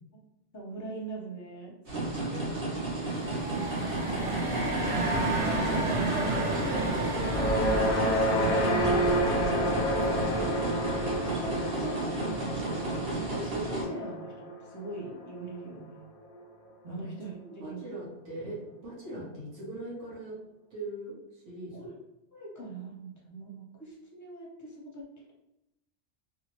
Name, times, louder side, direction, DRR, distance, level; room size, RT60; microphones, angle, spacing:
voice 1, 0.5-1.8 6.2-7.0 7.6-10.3 11.2-12.7 13.2-16.0 16.9-17.9 21.7-21.9 22.3-25.2, right 2 dB, 20° left, -2 dB, 0.6 m, -41 dB
sound 1, 1.9-13.8, right 2 dB, 55° right, 1.2 m, -33 dB
voice 2, 1.9-2.6 10.3-10.4 16.8-17.0 17.4-20.4 20.7-21.8, right 1 dB, 80° right, -7 dB, 1.3 m, -41 dB
sound 2, 3.0-11.7, right 2 dB, 35° right, 0.6 m, -32 dB
sound 3, 7.2-15.5, equal, 60° left, 0.6 m, -30 dB
2.8 x 2.6 x 2.9 m, 0.90 s
omnidirectional pair, 1.2 m